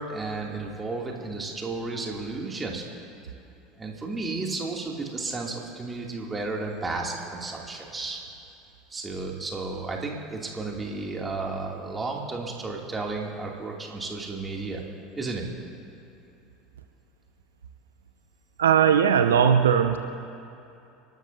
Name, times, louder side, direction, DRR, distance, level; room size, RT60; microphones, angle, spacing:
voice 1, 0.0-2.8 3.8-8.2 8.9-14.8 15.1-15.5, right 3 dB, 20° right, -1 dB, 2.6 m, -33 dB
voice 2, 18.6-20.0, right 8 dB, 75° right, 6 dB, 0.6 m, -19 dB
30.0 x 13.0 x 2.7 m, 2.7 s
figure-of-eight pair, 75°, 0 cm